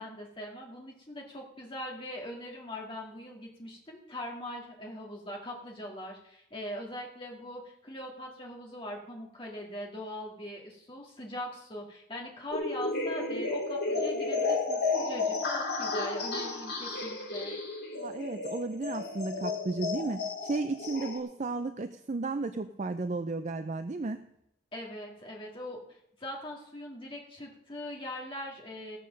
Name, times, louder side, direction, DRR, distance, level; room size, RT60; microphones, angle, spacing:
voice 1, 0.0-17.5 24.7-29.0, left 1 dB, 25° left, -1 dB, 2.4 m, -41 dB
sound 1, 12.5-21.2, left 3 dB, 50° left, 2.7 m, -32 dB
voice 2, 18.0-24.2, right 3 dB, 35° right, 9 dB, 0.4 m, -34 dB
16.5 x 6.7 x 6.5 m, 0.78 s
head